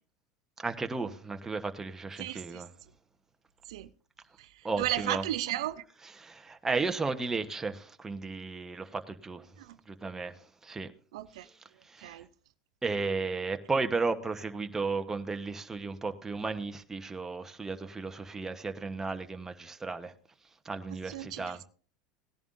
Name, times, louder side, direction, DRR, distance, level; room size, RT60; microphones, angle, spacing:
voice 1, 0.6-2.7 4.6-5.3 6.0-9.5 9.9-10.3 10.6-10.9 11.4-11.5 11.9-12.2 12.8-20.1 20.6-21.6, right 4 dB, 15° right, 1.1 m, -34 dB
voice 2, 4.8-5.8 11.1-11.4 12.0-12.2 21.1-21.4, right 14 dB, 80° right, 0.6 m, -33 dB
18.0 x 10.5 x 2.6 m
hypercardioid pair, 100°, 3 cm